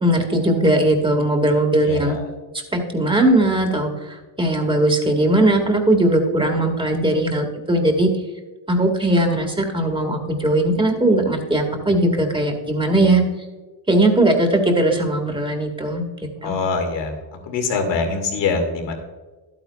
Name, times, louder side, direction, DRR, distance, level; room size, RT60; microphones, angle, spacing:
voice 1, 0.0-2.2 2.7-8.1 8.7-13.2 13.9-16.0 16.4-16.5, right 1 dB, 10° right, 4 dB, 1.8 m, -19 dB
voice 2, 1.8-2.3 16.4-17.1 17.4-18.9, left 4 dB, 70° left, 3 dB, 2.5 m, -23 dB
11.5 x 8.9 x 2.4 m, 1.2 s
cardioid pair, 90°, 45 cm